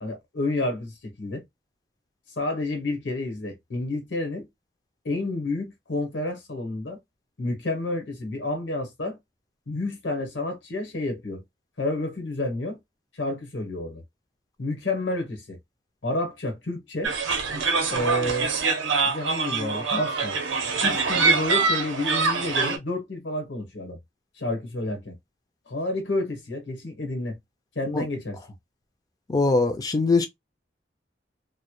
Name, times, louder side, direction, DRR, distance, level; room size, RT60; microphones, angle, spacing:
voice 1, 0.0-1.4 2.4-4.5 5.0-7.0 7.4-9.2 9.7-11.4 11.8-12.8 13.1-14.0 14.6-15.6 16.0-17.1 17.9-18.5 19.0-20.4 20.8-24.0 24.4-25.1 25.7-27.4 27.7-28.4, left 2 dB, 80° left, 0.9 m, -30 dB
sound 1, 17.0-22.8, right 4 dB, 90° right, 0.6 m, -24 dB
voice 2, 29.3-30.3, left 3 dB, 20° left, 0.3 m, -21 dB
2.1 x 2.0 x 2.9 m
head